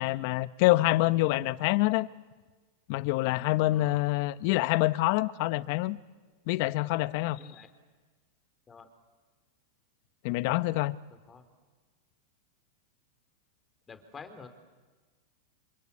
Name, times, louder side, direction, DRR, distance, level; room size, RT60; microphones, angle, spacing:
voice 1, 0.0-2.1 2.9-6.0 6.5-7.4 10.2-11.0, left 18 dB, 55° left, 0.9 m, -26 dB
voice 2, 7.4-7.7 8.7-8.9 11.3-11.4 13.9-14.5, left 5 dB, 20° left, 3.6 m, -48 dB
27.0 x 25.5 x 8.5 m
hypercardioid pair, 115°, 0 cm